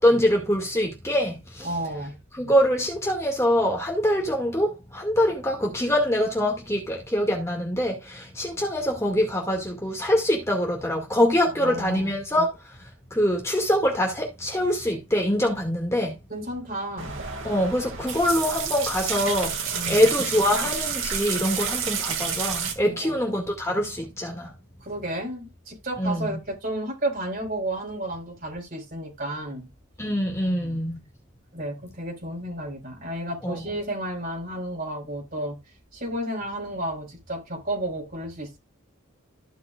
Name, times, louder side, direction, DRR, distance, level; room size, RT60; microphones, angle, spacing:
voice 1, 0.0-1.7 2.3-12.8 13.1-16.2 17.4-24.5 26.0-26.4 30.0-31.0 33.4-33.6, equal, 15° left, 2.2 m, -24 dB
voice 2, 1.6-2.2 11.6-12.1 16.3-17.2 19.7-20.1 22.8-23.2 24.8-29.7 30.4-30.8 31.5-35.6 35.9-38.6, right 1 dB, 45° right, 5.1 m, -32 dB
sound 1, 17.0-22.7, right 6 dB, 60° right, 2.4 m, -29 dB
15.0 x 5.7 x 2.5 m
head